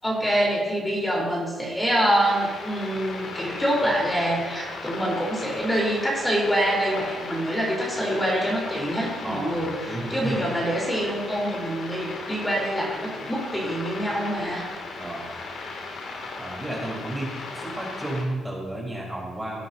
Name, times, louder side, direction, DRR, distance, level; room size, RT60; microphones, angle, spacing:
voice 1, 0.0-14.7, equal, 10° left, -4 dB, 3.9 m, -25 dB
sound 1, 2.2-18.2, left 3 dB, 65° left, 2.4 m, -37 dB
voice 2, 9.2-9.6 9.8-10.3 15.0-15.2 16.4-19.6, right 1 dB, 10° right, -4 dB, 3.9 m, -32 dB
18.5 x 9.2 x 2.8 m, 1.5 s
cardioid pair, 90°, 0 cm